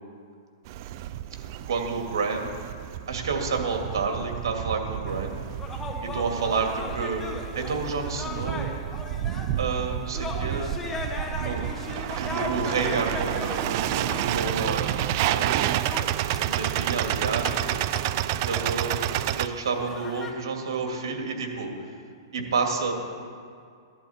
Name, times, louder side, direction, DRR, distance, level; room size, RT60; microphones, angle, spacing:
sound 1, 0.7-19.5, right 12 dB, 45° right, 0.4 m, -30 dB
voice 1, 1.7-2.5 3.1-5.4 6.1-7.2 7.6-8.7 9.6-10.7 11.4-11.6 12.2-15.6 16.4-17.7 18.4-19.1 19.4-21.7 22.3-23.0, right 4 dB, 75° right, 2 dB, 2.3 m, -29 dB
sound 2, 5.1-20.3, left 3 dB, 10° left, 1.3 m, -38 dB
15.0 x 11.0 x 4.3 m, 2.2 s
hypercardioid pair, 145°, 2 cm